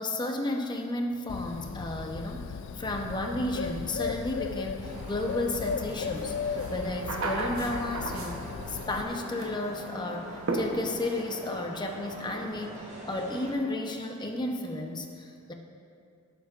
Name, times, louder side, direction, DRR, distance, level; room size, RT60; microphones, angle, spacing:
voice 1, 0.0-15.5, left 1 dB, 20° left, 2 dB, 0.8 m, -33 dB
Bird, 1.3-9.0, left 6 dB, 60° left, 0.3 m, -36 dB
sound 1, 4.8-13.5, right 1 dB, 35° right, 1.9 m, -43 dB
sound 2, 6.2-6.3 6.6-8.7 9.0-9.6 10.5-11.2, right 2 dB, 75° right, 1.0 m, -34 dB
17.5 x 7.4 x 2.5 m, 2.4 s
head